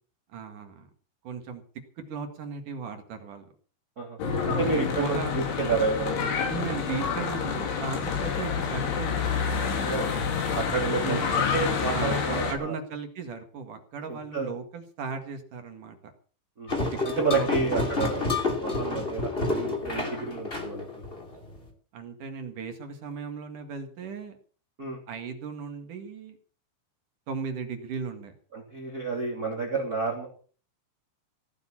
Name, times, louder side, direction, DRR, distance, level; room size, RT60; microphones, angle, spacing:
voice 1, 0.3-0.9 1.2-1.6 2.1-3.4 5.0-5.4 6.5-9.3 11.0-11.4 11.9-16.1 17.3-17.8 21.9-24.3 25.1-26.4 27.3-28.3, right 5 dB, 55° right, 6 dB, 2.8 m, -36 dB
Church bell / Traffic noise roadway noise, 4.2-12.5, left 6 dB, 80° left, 5.5 m, -28 dB
voice 2, 4.5-6.7 9.8-10.1 10.5-12.7 14.1-14.5 16.6-16.8 17.0-18.3 18.6-20.9 24.8-25.0 28.5-30.3, right 4 dB, 25° right, 0 dB, 2.8 m, -30 dB
sound 1, 16.7-21.6, left 3 dB, 15° left, 2.2 m, -29 dB
17.0 x 9.2 x 7.3 m, 0.42 s
omnidirectional pair, 5.4 m